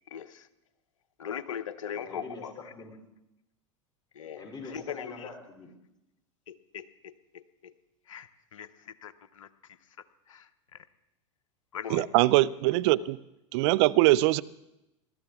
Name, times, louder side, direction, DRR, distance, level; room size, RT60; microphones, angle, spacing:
voice 1, 0.1-0.5 1.2-2.5 4.1-4.4 4.7-5.3 6.5-7.7 8.1-9.5 10.3-10.5 11.7-12.1, left 8 dB, 85° left, 0.8 m, -40 dB
voice 2, 2.0-3.0 4.4-5.7, left 3 dB, 25° left, 3.0 m, -44 dB
voice 3, 11.9-13.2 13.5-14.4, right 18 dB, 60° right, 0.5 m, -22 dB
20.0 x 13.0 x 3.6 m
hypercardioid pair, 90°, 17 cm